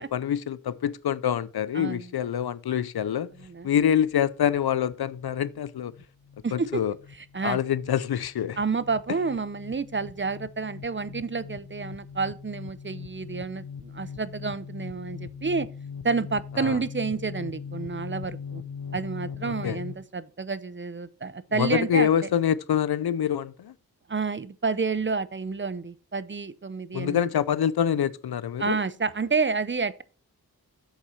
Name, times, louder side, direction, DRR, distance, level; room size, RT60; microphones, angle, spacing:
voice 1, 0.0-3.3 3.6-5.9 6.5-6.9 7.4-8.6 16.6-16.8 19.4-19.8 21.5-23.7 26.9-28.8, left 9 dB, 85° left, 0.6 m, -26 dB
voice 2, 1.7-2.1 3.4-3.7 6.4-6.8 7.3-7.6 8.6-15.7 16.0-18.6 18.9-22.3 24.1-27.3 28.6-30.0, right 4 dB, 30° right, 0.6 m, -29 dB
sound 1, 3.3-20.0, left 6 dB, 65° left, 0.9 m, -41 dB
7.9 x 6.6 x 4.4 m
wide cardioid pair, 75°, 37 cm